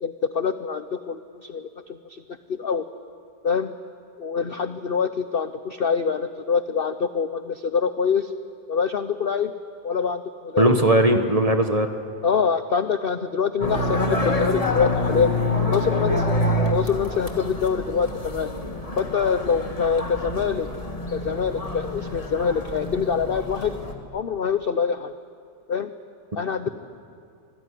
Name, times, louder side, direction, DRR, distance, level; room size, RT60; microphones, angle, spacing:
voice 1, 0.0-2.2 2.5-2.8 3.4-3.7 4.2-8.3 8.7-9.5 9.8-10.8 12.2-15.4 15.7-16.2 16.7-18.5 19.0-20.7 21.1-23.7 24.1-25.1 25.7-25.9 26.3-26.7, left 6 dB, 50° left, 10 dB, 0.7 m, -25 dB
voice 2, 10.6-11.9, right 1 dB, 25° right, 5 dB, 1.4 m, -18 dB
sound 1, 13.6-23.9, left 2 dB, 20° left, 1.9 m, -27 dB
26.0 x 18.5 x 9.9 m, 2.5 s
omnidirectional pair, 1.8 m